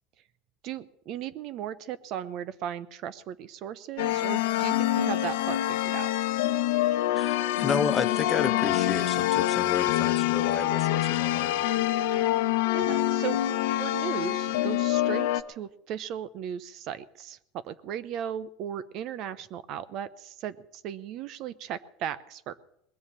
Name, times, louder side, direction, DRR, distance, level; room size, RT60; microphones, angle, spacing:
voice 1, 0.6-6.1 12.7-13.4 13.8-22.5, right 9 dB, 55° right, 15 dB, 0.8 m, -36 dB
sound 1, 4.0-15.4, left 14 dB, 80° left, 0.9 m, -26 dB
voice 2, 7.1-11.6, left 5 dB, 25° left, 9 dB, 1.2 m, -32 dB
20.5 x 7.1 x 9.9 m, 0.74 s
supercardioid pair, 120°, 0 cm